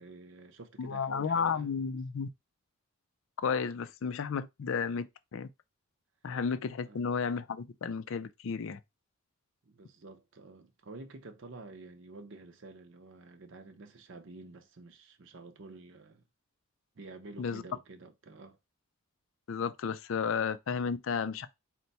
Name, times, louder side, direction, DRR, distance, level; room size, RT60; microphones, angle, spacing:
voice 1, 0.0-1.7 6.8-7.0 9.6-16.2 17.0-18.6, right 3 dB, 60° right, 0.6 m, -49 dB
voice 2, 0.8-2.3 3.4-5.1 5.3-5.5 6.2-8.8 17.4-17.6 19.5-21.5, left 6 dB, 65° left, 0.4 m, -32 dB
4.4 x 2.2 x 4.0 m
head